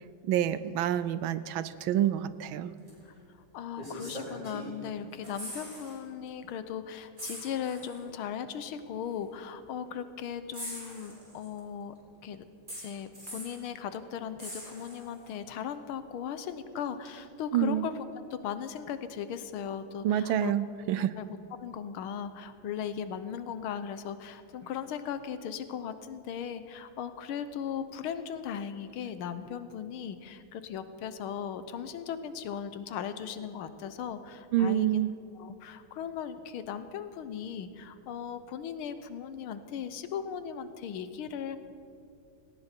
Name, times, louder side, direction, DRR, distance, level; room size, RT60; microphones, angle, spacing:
voice 1, 0.3-2.7 17.5-17.8 20.0-21.2 34.5-35.1, right 11 dB, 75° right, 15 dB, 1.3 m, -27 dB
sound 1, 2.9-3.0 3.8-4.9 5.1-6.0 6.3-6.4 7.2-8.0 9.1-9.2 10.5-11.6 12.7-13.6 14.4-15.3 17.1-17.2, equal, 20° right, 4.2 m, -42 dB
voice 2, 3.5-11.9 12.2-12.4 12.7-18.0 18.3-20.5 20.9-35.0 35.3-41.6, left 8 dB, 80° left, 11 dB, 1.7 m, -38 dB
18.0 x 18.0 x 4.4 m, 2.6 s
omnidirectional pair, 2.3 m